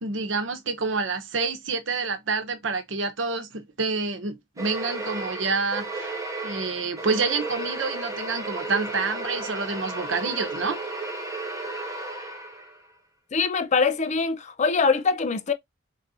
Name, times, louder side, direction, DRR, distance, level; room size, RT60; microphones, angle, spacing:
voice 1, 0.0-6.1 6.4-10.8, right 4 dB, 80° right, 0.9 m, -28 dB
sound 1, 4.6-12.9, right 2 dB, 15° right, 1.3 m, -33 dB
voice 2, 13.3-15.5, left 4 dB, 40° left, 0.5 m, -23 dB
4.1 x 3.8 x 2.6 m
head